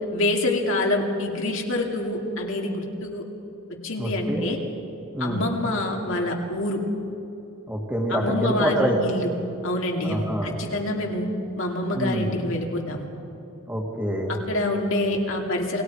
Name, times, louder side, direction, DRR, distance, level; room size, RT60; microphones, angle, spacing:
voice 1, 0.1-3.2 3.8-4.6 5.2-6.8 8.1-9.3 9.6-11.3 11.6-13.1 14.3-15.8, left 1 dB, 60° left, 0 dB, 2.6 m, -26 dB
voice 2, 4.0-4.4 5.1-5.5 7.7-9.2 10.0-10.6 11.9-12.3 13.7-14.3, equal, 10° right, 0 dB, 2.2 m, -26 dB
28.0 x 19.5 x 4.9 m, 2.8 s
head